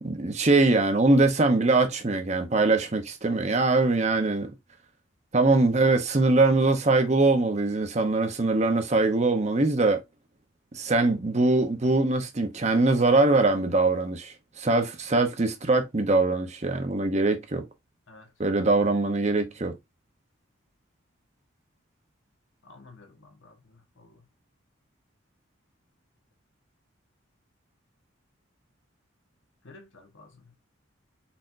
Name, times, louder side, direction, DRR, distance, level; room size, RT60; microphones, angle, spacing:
voice 1, 0.0-4.5 5.3-10.0 10.7-17.6 18.4-19.7, right 3 dB, 35° right, 0.7 m, -22 dB
voice 2, 22.6-24.2 29.6-30.5, left 3 dB, 70° left, 1.2 m, -52 dB
4.3 x 4.3 x 2.5 m
head